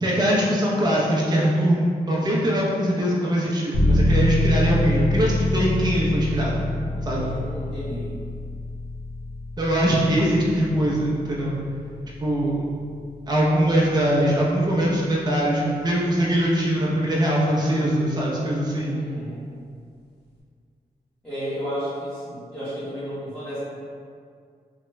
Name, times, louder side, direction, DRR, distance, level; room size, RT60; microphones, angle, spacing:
voice 1, 0.0-6.6 7.1-7.2 9.6-11.6 12.2-12.6 13.3-18.9, right 1 dB, 25° right, -5 dB, 0.6 m, -22 dB
sound 1, 3.7-14.3, left 1 dB, 80° left, 0.9 m, -26 dB
voice 2, 6.9-8.2 18.8-19.5 21.2-23.6, equal, 5° left, -15 dB, 1.2 m, -33 dB
3.0 x 2.3 x 3.1 m, 2.2 s
cardioid pair, 50°, 17 cm